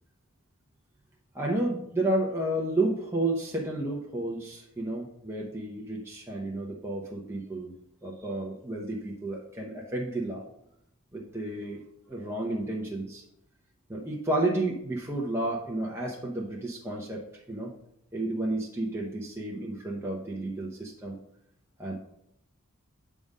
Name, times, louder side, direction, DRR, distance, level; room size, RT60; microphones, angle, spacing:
voice 1, 1.3-7.7 8.0-10.4 11.1-11.8 12.1-13.2 13.9-17.2 17.5-17.7 18.1-21.2 21.8-21.9, right 2 dB, 10° right, -3 dB, 0.8 m, -31 dB
7.7 x 3.7 x 5.3 m, 0.77 s
head